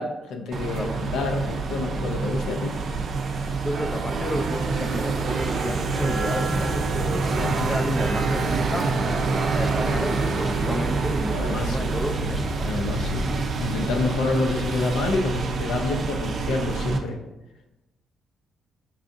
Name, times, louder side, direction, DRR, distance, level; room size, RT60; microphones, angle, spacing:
voice 1, 0.0-2.7 7.4-7.7 11.3-11.9 12.6-13.3 13.6-17.2, left 3 dB, 80° left, 3 dB, 0.5 m, -28 dB
sound 1, 0.5-17.0, right 3 dB, 55° right, 0.5 m, -26 dB
voice 2, 3.6-12.7, left 1 dB, 15° left, 5 dB, 0.4 m, -32 dB
5.5 x 2.5 x 2.5 m, 0.98 s
cardioid pair, 90°, 0 cm